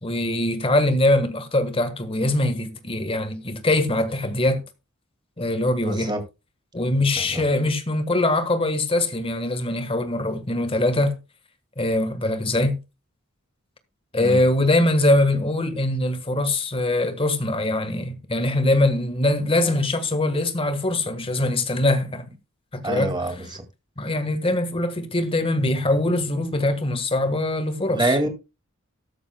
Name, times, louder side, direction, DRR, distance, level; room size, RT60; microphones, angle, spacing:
voice 1, 0.0-4.6 5.4-6.1 6.7-11.2 11.8-12.8 14.1-22.3 22.7-23.5 24.0-28.2, left 1 dB, 25° left, 1.5 m, -22 dB
voice 2, 5.8-6.2 7.2-7.4 14.2-14.4 22.8-23.6 27.9-28.3, right 2 dB, 20° right, 2.2 m, -25 dB
13.5 x 12.5 x 2.3 m
head